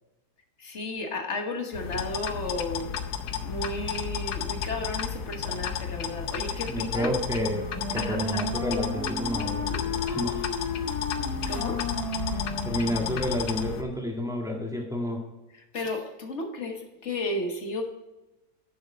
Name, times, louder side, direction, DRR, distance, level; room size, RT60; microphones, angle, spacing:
voice 1, 0.6-2.9 3.4-7.1 7.9-8.4 11.5-11.8 15.7-17.8, left 2 dB, 45° left, 4 dB, 1.6 m, -33 dB
sound 1, 1.7-13.8, left 8 dB, 80° left, 1.3 m, -32 dB
voice 2, 6.5-10.5 11.4-11.5 12.3-15.2, equal, ahead, 0 dB, 1.6 m, -30 dB
Wind instrument woodwind instrument, 7.3-13.4, left 2 dB, 65° right, 3.9 m, -34 dB
10.5 x 6.7 x 4.2 m, 1.1 s
omnidirectional pair, 1.7 m